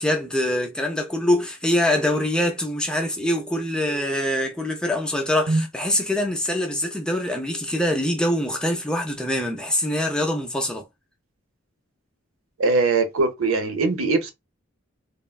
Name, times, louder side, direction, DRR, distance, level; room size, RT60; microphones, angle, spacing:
voice 1, 0.0-10.8, left 1 dB, 5° left, 0.4 m, -24 dB
voice 2, 12.6-14.3, right 3 dB, 75° right, 0.7 m, -21 dB
3.3 x 2.2 x 2.2 m
head